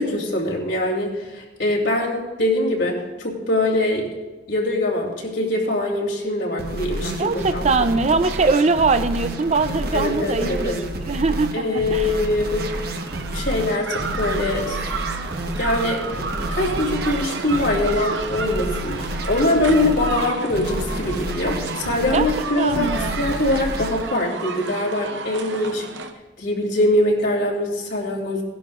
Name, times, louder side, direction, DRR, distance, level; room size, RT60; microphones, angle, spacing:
voice 1, 0.0-4.1 4.5-7.6 8.2-8.3 9.9-10.8 11.5-12.7 13.3-14.8 15.6-16.0 16.3-25.8 26.4-28.4, left 1 dB, 75° left, -1 dB, 2.9 m, -23 dB
sound 1, 6.6-24.0, right 1 dB, 55° right, 1.2 m, -30 dB
voice 2, 7.2-10.8 11.1-12.1 22.1-22.3 22.6-23.2, right 4 dB, 40° right, 11 dB, 0.5 m, -21 dB
sound 2, 12.0-26.1, right 4 dB, 85° right, 0.9 m, -32 dB
18.5 x 11.5 x 2.5 m, 1.2 s
head